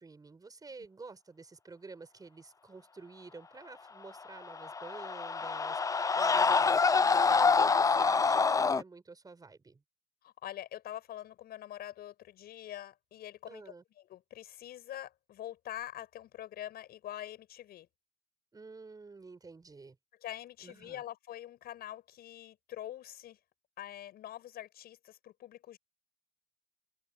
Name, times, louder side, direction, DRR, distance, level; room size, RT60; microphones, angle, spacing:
voice 1, 0.0-9.8 13.5-13.8 18.5-20.0 20.6-21.0, right 4 dB, 20° right, 5.2 m, -50 dB
Screaming, 4.4-8.8, left 4 dB, 20° left, 0.5 m, -26 dB
voice 2, 10.2-13.7 14.1-17.9 20.2-23.4 23.8-25.8, left 12 dB, 65° left, 7.7 m, -45 dB
open air
cardioid pair, 110°, 17 cm